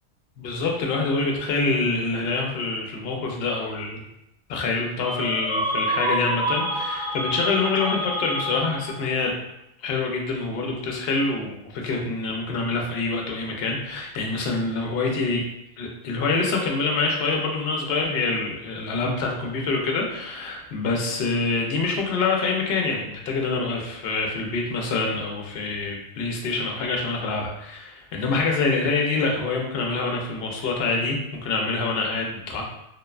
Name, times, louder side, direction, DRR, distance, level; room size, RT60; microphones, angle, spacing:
voice 1, 0.4-4.0 4.5-9.3 9.8-15.4 15.8-32.6, left 3 dB, 65° left, 0 dB, 0.7 m, -26 dB
sound 1, 5.0-9.2, equal, 40° left, 1.0 m, -28 dB
2.6 x 2.1 x 2.3 m, 0.84 s
omnidirectional pair, 1.1 m